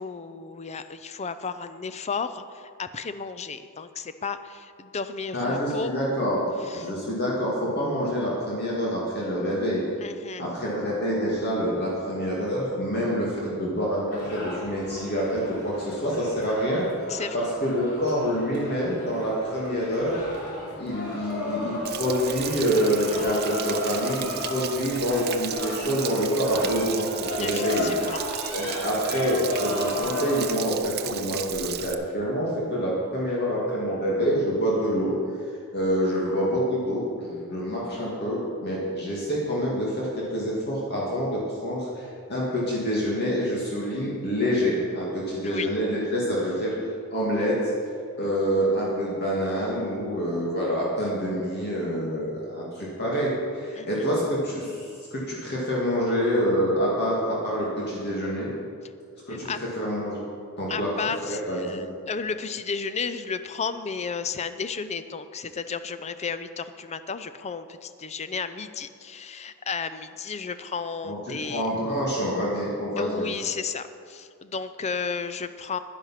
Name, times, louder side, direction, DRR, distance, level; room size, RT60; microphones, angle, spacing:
voice 1, 0.0-5.9 6.6-6.9 10.0-10.4 17.1-17.4 27.4-28.2 45.4-45.7 53.7-54.0 59.3-59.6 60.7-71.7 73.0-75.8, left 5 dB, 30° left, 12 dB, 0.5 m, -33 dB
voice 2, 5.3-6.5 6.7-9.8 10.4-16.9 17.3-20.2 20.8-27.9 28.5-35.1 35.7-46.7 47.1-47.6 48.1-58.5 59.3-60.2 60.6-60.9 61.2-61.8 71.0-73.3, equal, 45° left, -5 dB, 2.2 m, -27 dB
sound 1, 14.1-30.4, left 1 dB, 70° left, 2.8 m, -34 dB
Stream / Splash splatter / Trickle dribble, 21.8-31.9, right 11 dB, 45° right, 0.6 m, -35 dB
10.5 x 10.5 x 5.8 m, 2.3 s
head